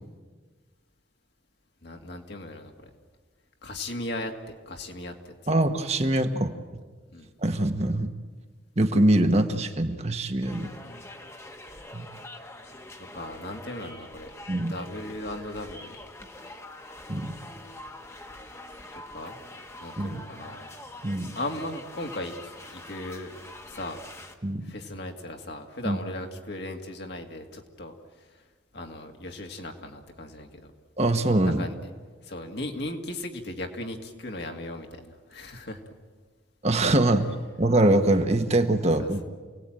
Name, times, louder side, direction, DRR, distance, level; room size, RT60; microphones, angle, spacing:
voice 1, 1.8-2.9 3.6-5.3 7.1-7.3 10.6-11.0 13.1-14.3 14.6-15.9 19.1-19.4 19.8-20.7 21.4-23.3 23.6-24.0 24.6-27.9 28.7-30.7 31.6-31.7 32.2-35.8 39.0-39.2, left 1 dB, 55° left, 3 dB, 2.3 m, -37 dB
voice 2, 5.5-6.5 7.4-8.1 8.8-10.7 11.9-12.1 14.5-14.7 17.1-17.3 20.0-20.2 21.0-21.3 24.4-24.6 25.8-26.0 31.0-31.7 36.6-37.3 37.6-39.2, right 1 dB, 35° right, 6 dB, 1.3 m, -23 dB
sound 1, 10.4-24.3, left 1 dB, 15° left, 1.3 m, -44 dB
28.5 x 18.5 x 9.0 m, 1.5 s
head